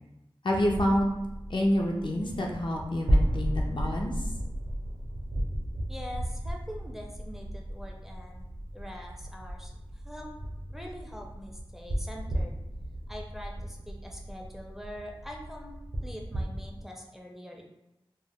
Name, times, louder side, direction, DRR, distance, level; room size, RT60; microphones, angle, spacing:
voice 1, 0.4-1.1 1.5-4.1, left 1 dB, 55° left, 0 dB, 0.5 m, -27 dB
sound 1, 0.6-16.8, equal, 75° right, 0.6 m, -34 dB
voice 2, 5.9-8.5 8.7-9.7 10.0-10.3 10.7-12.5 13.1-15.7 16.0-17.6, equal, 5° right, 0 dB, 0.4 m, -44 dB
2.1 x 2.0 x 3.4 m, 0.92 s
wide cardioid pair, 40°, 10 cm